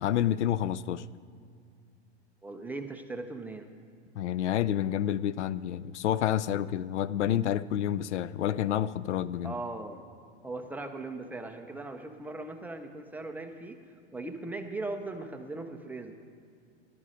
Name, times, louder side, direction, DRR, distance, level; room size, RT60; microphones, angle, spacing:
voice 1, 0.0-1.1 4.2-9.5, left 11 dB, 85° left, 18 dB, 0.5 m, -29 dB
voice 2, 2.4-3.7 9.4-10.0 10.4-13.8 14.1-16.1, right 2 dB, 5° right, 5 dB, 0.5 m, -39 dB
12.5 x 11.5 x 5.0 m, 2.4 s
hypercardioid pair, 130°, 34 cm